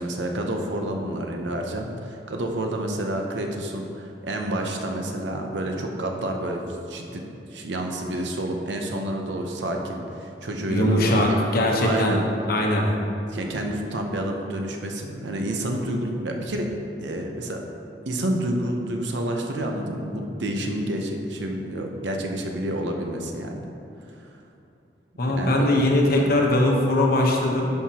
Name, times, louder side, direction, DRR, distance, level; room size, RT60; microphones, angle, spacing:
voice 1, 0.0-7.2 7.5-11.4 11.8-12.2 13.3-16.7 17.0-17.6 18.1-23.7 24.1-24.3 25.2-26.2, right 1 dB, 90° right, 2 dB, 0.8 m, -29 dB
voice 2, 10.7-12.2 12.5-12.9 25.2-27.7, left 1 dB, 60° left, 0 dB, 1.0 m, -21 dB
11.0 x 5.7 x 2.9 m, 2.7 s
head